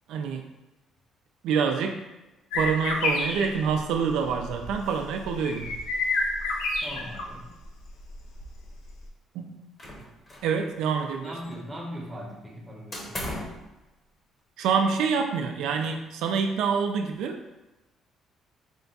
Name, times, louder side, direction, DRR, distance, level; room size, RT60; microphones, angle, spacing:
voice 1, 0.1-0.5 1.4-2.0 2.5-5.8 9.3-9.7 10.4-11.3 14.6-17.4, right 6 dB, 80° right, 5 dB, 0.4 m, -26 dB
sound 1, 2.5-7.4 7.6-8.7, left 2 dB, 90° left, 0.6 m, -29 dB
voice 2, 6.8-7.5 11.2-13.6, equal, 10° right, -2 dB, 0.7 m, -40 dB
sound 2, 9.8-10.6 10.8-11.8 12.9-13.7, left 1 dB, 20° left, 0.8 m, -37 dB
4.4 x 2.3 x 3.9 m, 1.0 s
cardioid pair, 165°, 0 cm